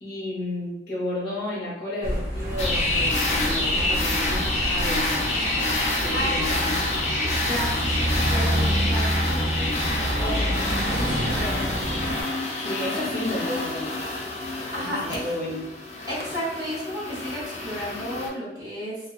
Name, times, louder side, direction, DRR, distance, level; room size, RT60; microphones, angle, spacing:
voice 1, 0.0-5.1 6.0-6.8 12.6-13.9 14.8-15.6, left 1 dB, 55° left, -7 dB, 0.9 m, -32 dB
sound 1, 2.0-12.2, right 1 dB, 55° right, 0.7 m, -27 dB
sound 2, 2.6-18.3, left 2 dB, 35° left, 0.4 m, -28 dB
voice 2, 7.4-11.7 14.7-15.2 16.1-19.0, equal, 20° right, -9 dB, 1.0 m, -33 dB
2.3 x 2.3 x 2.3 m, 0.93 s
head